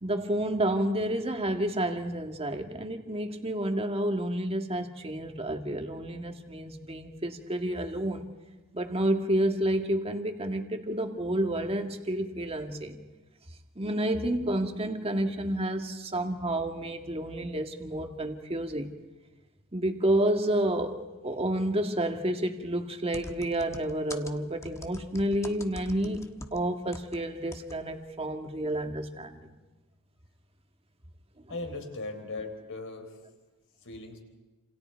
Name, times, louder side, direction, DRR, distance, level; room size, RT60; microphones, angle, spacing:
voice 1, 0.0-8.2 8.7-13.0 13.8-18.9 19.7-29.6, right 1 dB, 25° right, 1.9 m, -30 dB
sound 1, 23.1-27.2 27.5-27.8 28.0-28.1, left 1 dB, 15° left, 1.3 m, -43 dB
voice 2, 31.5-33.1 33.8-34.2, left 2 dB, 60° left, 4.2 m, -38 dB
29.5 x 28.0 x 4.6 m
head